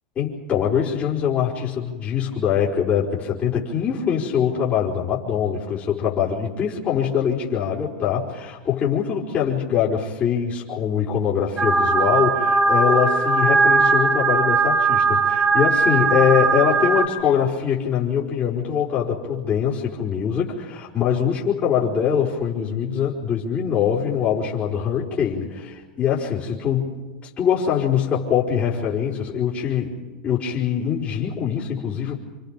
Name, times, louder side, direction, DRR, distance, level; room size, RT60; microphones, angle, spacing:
voice 1, 0.1-27.0 27.4-32.2, left 8 dB, 30° left, -6 dB, 4.7 m, -23 dB
sound 1, 11.6-17.1, right 4 dB, 20° right, 4.4 m, -19 dB
28.0 x 26.0 x 5.3 m, 1.3 s
hypercardioid pair, 105°, 5 cm